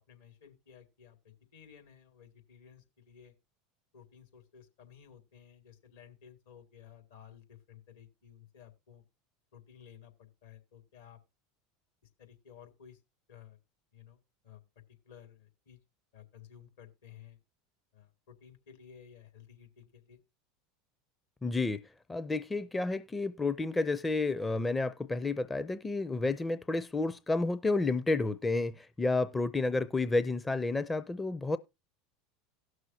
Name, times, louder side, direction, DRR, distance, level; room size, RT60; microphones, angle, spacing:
voice 1, 0.0-3.3 3.9-9.0 9.5-11.2 12.2-13.0 13.3-13.6 13.9-14.2 14.4-14.6 15.0-15.8 16.1-17.4 17.9-20.2, left 9 dB, 75° left, 2.2 m, -55 dB
voice 2, 21.4-21.8 22.1-31.6, left 3 dB, 15° left, 0.5 m, -31 dB
17.5 x 6.4 x 2.8 m
hypercardioid pair, 80°, 0 cm